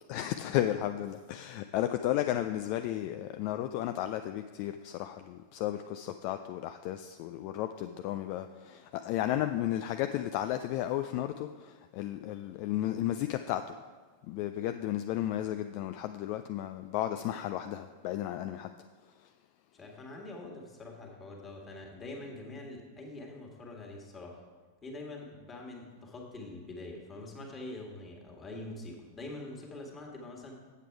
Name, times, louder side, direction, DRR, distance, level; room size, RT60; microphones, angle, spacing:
voice 1, 0.1-13.8 14.3-18.7, left 13 dB, 45° left, 8 dB, 0.3 m, -33 dB
voice 2, 19.7-24.4 24.8-30.6, left 2 dB, 20° left, 0 dB, 1.9 m, -44 dB
8.2 x 7.6 x 4.7 m, 1.4 s
figure-of-eight pair, 90°, 0 cm